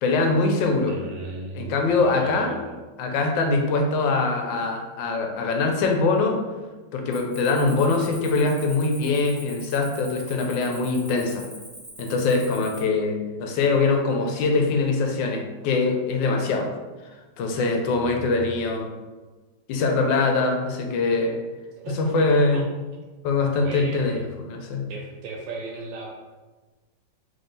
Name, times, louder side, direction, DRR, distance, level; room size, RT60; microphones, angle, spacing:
voice 1, 0.0-1.0 1.5-2.6 3.0-6.4 6.9-11.5 12.0-16.7 17.4-18.9 19.7-21.4 22.0-22.6 23.2-24.9, left 3 dB, 85° left, 3 dB, 1.4 m, -23 dB
voice 2, 0.9-2.8 17.9-18.5 21.8-22.6 23.5-24.3 24.9-26.1, right 3 dB, 80° right, 0 dB, 1.3 m, -37 dB
Cricket, 7.1-12.8, equal, 20° right, 0.4 m, -43 dB
3.8 x 3.3 x 3.9 m, 1.3 s
omnidirectional pair, 2.0 m